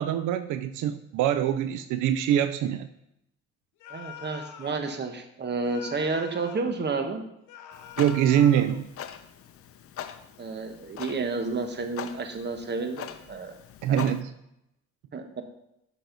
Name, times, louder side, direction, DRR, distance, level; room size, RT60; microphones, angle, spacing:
voice 1, 0.0-2.9 8.0-8.9 13.8-14.3, right 10 dB, 85° right, 11 dB, 0.5 m, -24 dB
sound 1, 3.8-4.9 5.6-6.7 7.5-8.8, left 9 dB, 85° left, 1.0 m, -44 dB
voice 2, 3.9-7.2 10.4-13.5 13.9-14.1 15.1-15.4, right 4 dB, 35° right, 6 dB, 1.1 m, -31 dB
Clock, 7.7-14.2, left 9 dB, 50° left, 0.6 m, -42 dB
6.8 x 6.3 x 3.9 m, 0.81 s
cardioid pair, 90°, 30 cm